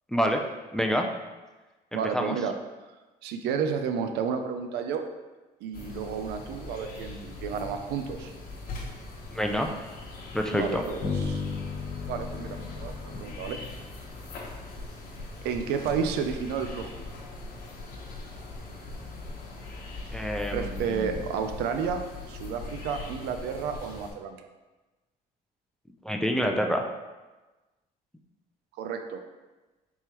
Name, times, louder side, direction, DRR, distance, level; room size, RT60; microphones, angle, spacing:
voice 1, 0.1-0.4 0.7-1.0 1.9-2.4 9.3-9.7 10.3-10.8 20.1-21.2 26.0-26.8, equal, 5° left, 3 dB, 0.4 m, -27 dB
voice 2, 1.9-2.5 3.2-5.0 5.6-8.3 10.5-11.4 12.1-13.6 15.4-17.0 20.5-22.0 22.3-24.5 28.8-29.2, right 6 dB, 85° right, 6 dB, 0.4 m, -31 dB
sound 1, 5.7-24.1, left 2 dB, 60° left, 1.0 m, -41 dB
Bass guitar, 11.0-14.8, left 5 dB, 80° left, 1.3 m, -35 dB
4.5 x 3.6 x 2.9 m, 1.2 s
cardioid pair, 110°, 17 cm